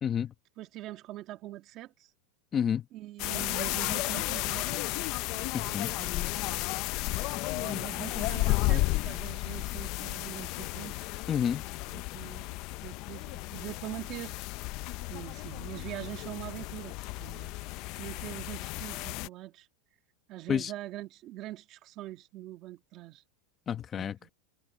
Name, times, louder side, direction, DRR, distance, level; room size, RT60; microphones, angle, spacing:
voice 1, 0.0-0.3 2.5-2.8 5.5-5.9 11.3-11.6 20.5-20.7 23.7-24.3, left 8 dB, 25° left, 1.1 m, -29 dB
voice 2, 0.6-2.1 2.9-5.0 5.3-6.7 7.5-11.0 11.9-14.4 15.1-17.6 18.0-19.7 20.3-23.2 24.0-24.3, right 15 dB, 35° right, 1.8 m, -43 dB
sound 1, 3.2-19.3, left 20 dB, 45° left, 0.6 m, -33 dB
supercardioid pair, 150°, 0 cm